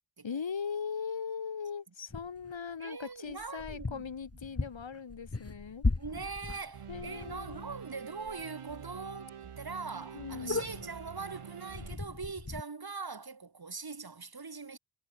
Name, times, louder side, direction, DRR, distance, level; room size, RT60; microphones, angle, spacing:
voice 1, 0.2-5.9 6.9-7.7 10.1-10.6, left 6 dB, 65° left, 3.7 m, -39 dB
sound 1, 2.1-2.6 3.3-7.8 8.2-8.4 8.7-8.8 9.3-9.4 9.6-9.7 10.0-11.1 11.7-12.6, left 3 dB, 30° left, 3.7 m, -37 dB
voice 2, 2.8-4.1 6.0-14.8, right 4 dB, 45° right, 5.8 m, -42 dB
sound 2, 6.7-12.0, right 8 dB, 85° right, 3.8 m, -47 dB
cardioid pair, 60°, 50 cm